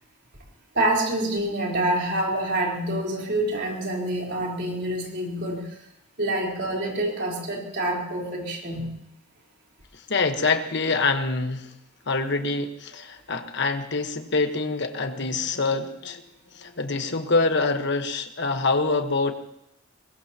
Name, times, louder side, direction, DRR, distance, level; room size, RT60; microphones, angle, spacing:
voice 1, 0.7-5.8 6.2-8.9, right 1 dB, 60° right, -2 dB, 4.1 m, -27 dB
voice 2, 9.9-11.7 12.1-16.2 16.5-19.3, left 3 dB, 60° left, 7 dB, 1.3 m, -25 dB
21.5 x 21.0 x 3.0 m, 0.79 s
head